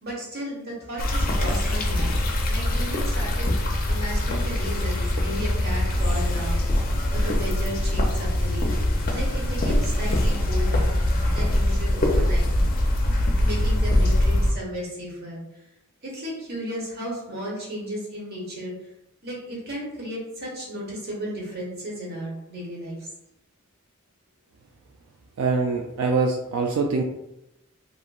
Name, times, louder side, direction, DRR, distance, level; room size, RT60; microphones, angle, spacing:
voice 1, 0.0-6.7 7.1-8.8 9.1-10.9 11.3-12.5 13.4-15.4 16.0-18.7 19.2-23.1, equal, 50° right, -4 dB, 1.0 m, -34 dB
sound 1, 1.0-14.5, left 1 dB, 40° left, 0.4 m, -23 dB
voice 2, 25.4-27.0, right 4 dB, 85° right, 1 dB, 0.3 m, -24 dB
2.9 x 2.5 x 2.3 m, 0.87 s
head